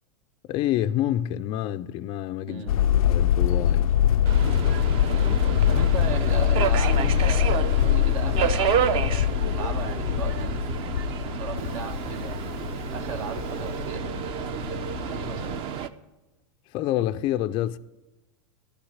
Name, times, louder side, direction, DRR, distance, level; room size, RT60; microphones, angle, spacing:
voice 1, 0.5-2.7 3.0-3.9 16.7-17.8, left 12 dB, 30° left, 0.4 m, -27 dB
sound 1, 2.7-15.6, left 10 dB, 90° left, 0.5 m, -24 dB
Subway metro underground, 4.3-15.9, right 9 dB, 30° right, 0.6 m, -30 dB
voice 2, 5.1-9.2 9.5-10.6 11.2-12.4 12.9-14.2 14.7-14.8 15.1-15.6, right 5 dB, 65° right, 1.4 m, -36 dB
13.5 x 6.0 x 9.7 m
supercardioid pair, 145°, 18 cm